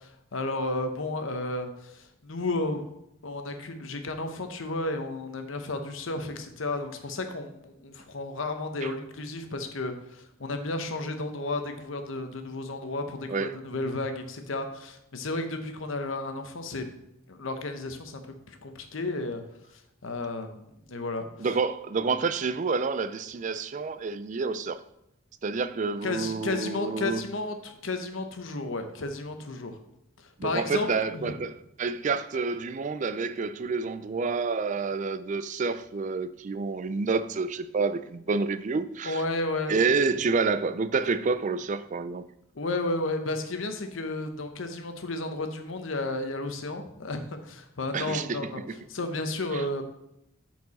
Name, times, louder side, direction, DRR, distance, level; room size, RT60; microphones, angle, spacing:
voice 1, 0.0-2.8 3.2-16.9 17.3-18.2 18.5-19.4 19.7-21.3 26.0-29.8 30.2-31.4 39.0-39.9 42.5-48.6 48.9-49.8, left 2 dB, 70° left, 0.9 m, -33 dB
voice 2, 21.4-24.8 25.4-27.2 30.4-31.5 31.8-39.2 39.7-42.3 47.9-48.6 49.5-49.6, right 4 dB, 35° right, 0.4 m, -28 dB
8.5 x 4.6 x 4.2 m
head